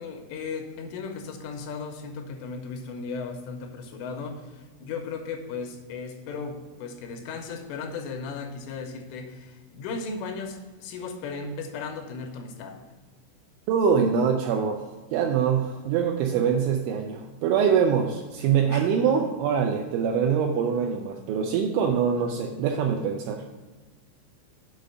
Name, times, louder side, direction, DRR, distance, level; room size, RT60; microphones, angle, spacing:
voice 1, 0.0-12.9 18.7-18.9, left 4 dB, 80° left, 4 dB, 3.2 m, -36 dB
voice 2, 13.7-14.8 15.1-23.5, right 7 dB, 85° right, 3 dB, 2.7 m, -24 dB
8.3 x 5.2 x 6.5 m, 1.3 s
omnidirectional pair, 6.0 m